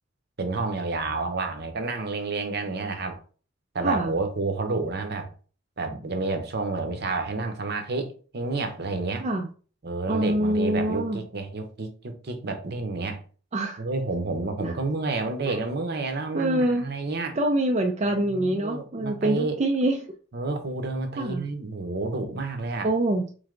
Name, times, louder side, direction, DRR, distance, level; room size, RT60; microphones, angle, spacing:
voice 1, 0.4-3.2 3.7-5.3 5.8-9.3 9.8-13.2 13.8-17.4 18.1-19.6 20.3-22.9, right 3 dB, 55° right, 0.8 m, -30 dB
voice 2, 10.1-11.2 13.5-13.8 14.6-14.8 15.5-15.6 16.3-16.9 17.3-20.0 21.2-21.5 22.8-23.3, right 1 dB, 35° right, 0.4 m, -25 dB
3.9 x 3.3 x 3.8 m
head